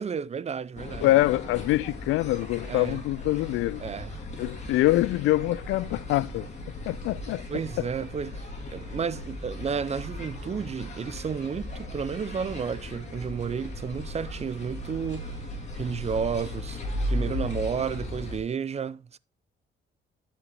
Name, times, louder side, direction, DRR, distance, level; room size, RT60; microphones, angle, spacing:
voice 1, 0.0-1.1 2.7-3.0 3.8-4.1 7.5-8.5 8.7-15.4 15.8-16.8 17.1-19.2, right 6 dB, 35° right, 0.5 m, -32 dB
sound 1, 0.8-18.4, left 1 dB, 35° left, 3.4 m, -37 dB
voice 2, 1.0-3.8 4.4-6.5 6.9-7.4 7.8-7.9, left 17 dB, 85° left, 0.4 m, -25 dB
11.0 x 5.3 x 4.8 m
cardioid pair, 90°, 20 cm